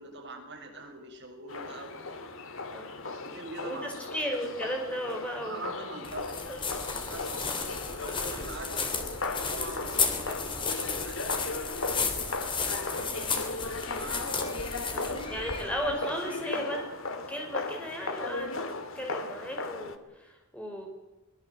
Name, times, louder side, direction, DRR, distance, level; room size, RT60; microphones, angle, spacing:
voice 1, 0.0-2.3 3.0-4.2 5.4-15.8 16.2-16.7, right 2 dB, 55° right, 1 dB, 7.1 m, -45 dB
sound 1, 1.5-20.0, left 3 dB, 70° left, 2.1 m, -37 dB
voice 2, 3.6-5.6 6.5-6.6 14.9-16.8 17.3-18.6 19.0-20.9, equal, 5° left, 1 dB, 5.7 m, -35 dB
sound 2, 6.0-15.9, left 5 dB, 25° left, 3.3 m, -33 dB
24.0 x 20.5 x 8.0 m, 1.0 s
head